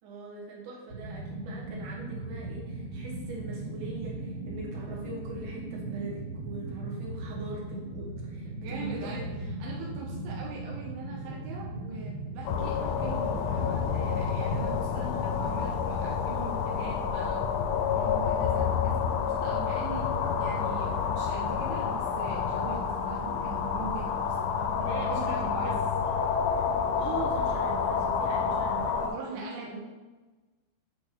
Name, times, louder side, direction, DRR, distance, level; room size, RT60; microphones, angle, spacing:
voice 1, 0.0-9.2 24.8-25.3 25.6-25.8 26.0-26.2 27.0-29.8, right 3 dB, 65° right, -3 dB, 2.5 m, -41 dB
sound 1, 0.9-14.8, right 2 dB, 30° right, 1.7 m, -38 dB
voice 2, 8.6-9.3 9.6-17.6 17.9-25.8 29.0-29.8, right 4 dB, 80° right, -1 dB, 2.0 m, -41 dB
sound 2, 12.5-29.1, left 6 dB, 80° left, 2.2 m, -29 dB
8.3 x 3.3 x 4.4 m, 1.2 s
omnidirectional pair, 4.6 m